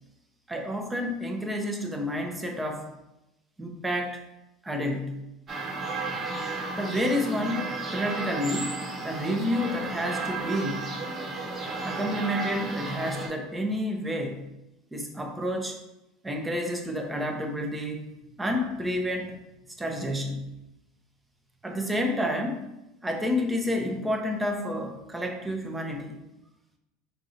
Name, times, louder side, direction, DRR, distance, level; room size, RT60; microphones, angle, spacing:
voice 1, 0.5-2.9 3.6-4.2 4.6-5.3 6.8-10.9 11.8-14.5 14.9-15.8 16.2-18.1 18.4-19.4 19.8-20.5 21.6-22.7 23.0-26.2, left 1 dB, 15° right, 3 dB, 0.7 m, -30 dB
sound 1, 5.5-13.3, right 3 dB, 35° right, 1.0 m, -33 dB
4.6 x 2.7 x 2.8 m, 0.93 s
hypercardioid pair, 90°, 0 cm